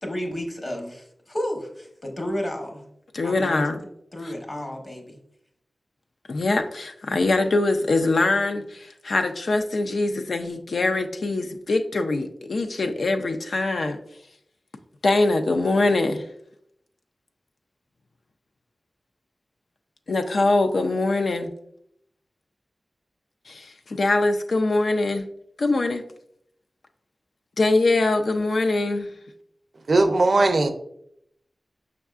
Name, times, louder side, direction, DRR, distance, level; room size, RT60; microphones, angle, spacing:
voice 1, 0.0-2.8 3.2-3.8 4.1-5.2, left 1 dB, 40° left, 1.0 m, -32 dB
voice 2, 3.1-3.8 6.3-14.0 15.0-16.3 20.1-21.5 23.5-25.3 25.6-26.0 27.6-29.1, left 2 dB, 80° left, 0.4 m, -23 dB
voice 3, 29.9-30.7, right 2 dB, 65° right, 0.5 m, -18 dB
5.4 x 3.5 x 2.4 m
wide cardioid pair, 70°, 0 cm